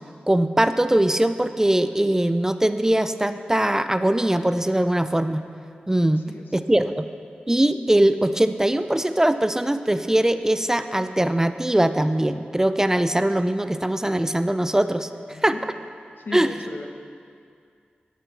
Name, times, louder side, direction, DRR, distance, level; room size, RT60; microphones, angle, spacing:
voice 1, 0.3-5.4 5.9-6.2 6.5-7.1 7.5-15.1 15.4-15.5 16.3-16.5, right 1 dB, 15° right, 10 dB, 0.4 m, -21 dB
voice 2, 6.1-6.6 15.3-15.6 16.2-16.9, left 3 dB, 75° left, 3 dB, 0.9 m, -36 dB
12.5 x 6.1 x 5.7 m, 2.3 s
wide cardioid pair, 65°, 3 cm